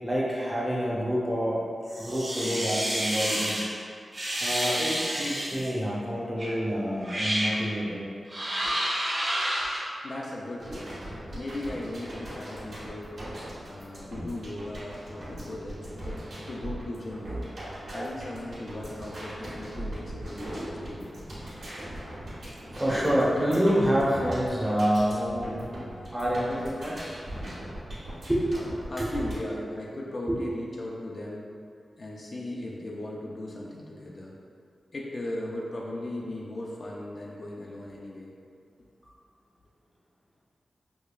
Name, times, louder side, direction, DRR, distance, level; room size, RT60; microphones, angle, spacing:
voice 1, 0.0-1.6 2.0-3.6 4.4-8.1 8.6-8.7 10.7-10.8 20.5-20.7 22.7-25.6 26.1-27.2 28.3-28.6 29.0-29.1 30.3-30.4, equal, 5° right, -6 dB, 0.7 m, -27 dB
sound 1, 1.9-3.7 4.1-5.7 6.4-6.5 7.0-7.6 8.3-9.8, right 1 dB, 40° right, 0.9 m, -29 dB
voice 2, 10.0-11.0 11.3-13.1 13.7-17.4 17.9-21.3 28.9-31.5 32.0-34.3 34.9-38.3, left 1 dB, 45° left, -4 dB, 0.4 m, -37 dB
sound 2, 10.6-29.4, right 1 dB, 70° right, 1.2 m, -39 dB
4.8 x 2.3 x 2.3 m, 2.3 s
wide cardioid pair, 105°, 0 cm